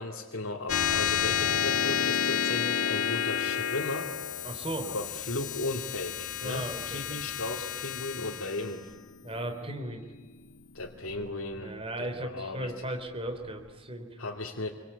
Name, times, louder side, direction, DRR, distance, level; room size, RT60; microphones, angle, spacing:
voice 1, 0.0-4.1 4.8-8.9 10.7-12.8 14.2-14.7, left 2 dB, 65° left, 0 dB, 2.7 m, -36 dB
sound 1, 0.7-11.5, left 8 dB, 85° left, 1.5 m, -31 dB
voice 2, 4.4-4.9 6.4-7.2 9.2-10.0 11.6-14.1, right 1 dB, 25° right, 5 dB, 3.4 m, -36 dB
28.5 x 24.5 x 8.4 m, 1.3 s
head